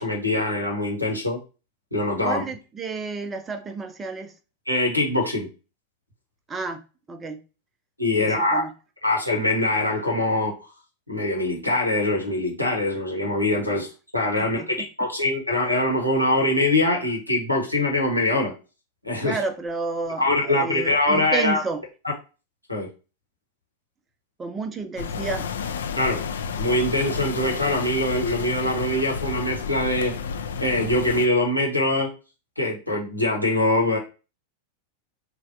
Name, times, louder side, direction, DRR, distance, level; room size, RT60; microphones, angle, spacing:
voice 1, 0.0-1.4 1.9-2.4 4.7-5.5 8.0-8.7 9.0-10.6 11.1-13.9 14.1-18.5 19.0-19.4 20.2-21.6 22.7-22.9 25.9-26.2 26.6-30.1 30.6-32.1 32.6-34.0, left 1 dB, 90° left, 1.0 m, -23 dB
voice 2, 2.2-4.3 6.5-6.8 7.1-7.4 8.2-8.7 14.4-14.9 19.2-21.8 24.4-25.5, right 4 dB, 20° right, 0.5 m, -31 dB
sound 1, 25.0-31.3, left 6 dB, 65° left, 0.3 m, -31 dB
3.1 x 2.2 x 2.7 m
figure-of-eight pair, 90°, 0 cm